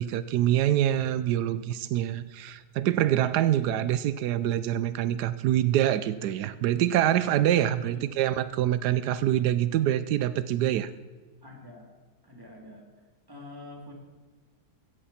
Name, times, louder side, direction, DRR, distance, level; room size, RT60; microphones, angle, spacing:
voice 1, 0.0-10.9, right 12 dB, 85° right, 14 dB, 1.2 m, -25 dB
voice 2, 7.9-8.2 11.4-11.9 12.2-12.8 13.3-13.9, left 2 dB, 15° right, -1 dB, 3.2 m, -46 dB
16.5 x 14.0 x 4.3 m, 1.4 s
omnidirectional pair, 1.7 m